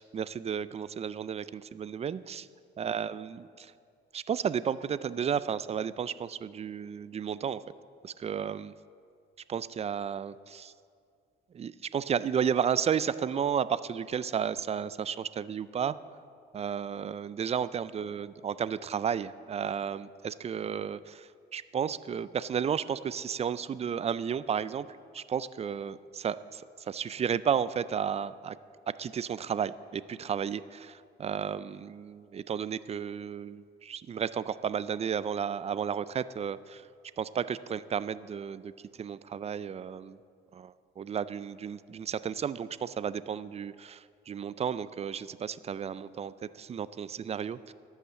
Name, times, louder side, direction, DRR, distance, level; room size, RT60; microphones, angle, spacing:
voice 1, 0.0-2.5 2.8-3.7 4.1-7.6 8.0-8.7 9.5-10.7 11.5-16.0 16.5-28.6 29.0-36.9 37.2-38.7 39.0-40.2 40.5-47.7, right 7 dB, 30° right, 16 dB, 0.4 m, -33 dB
12.0 x 5.7 x 7.4 m, 2.2 s
cardioid pair, 90°, 20 cm